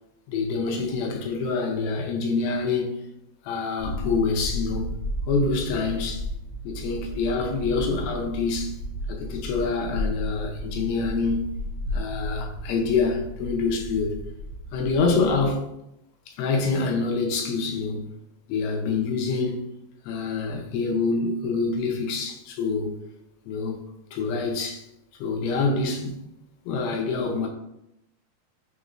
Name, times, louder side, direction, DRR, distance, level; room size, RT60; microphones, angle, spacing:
voice 1, 0.3-2.9 3.4-4.9 5.3-6.3 6.6-8.8 9.1-11.5 11.9-14.2 14.7-15.7 16.3-18.1 18.5-19.7 20.0-23.0 23.5-23.8 24.1-24.8 25.2-26.2 26.7-27.5, left 4 dB, 85° left, 2.7 m, -26 dB
sound 1, 3.8-15.5, equal, 45° left, 1.9 m, -34 dB
6.0 x 2.5 x 3.0 m
omnidirectional pair, 4.4 m